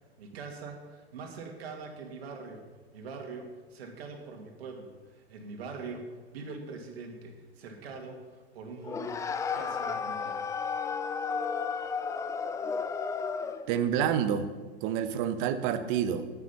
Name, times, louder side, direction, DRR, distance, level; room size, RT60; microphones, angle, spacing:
voice 1, 0.2-2.6 2.9-9.2 9.5-10.5, right 4 dB, 65° right, 2 dB, 2.2 m, -43 dB
sound 1, 8.8-13.7, left 5 dB, 10° left, 0.3 m, -33 dB
voice 2, 13.7-14.5 14.8-16.3, right 9 dB, 45° right, 10 dB, 1.1 m, -28 dB
9.5 x 8.3 x 5.9 m, 1.3 s
hypercardioid pair, 100°, 33 cm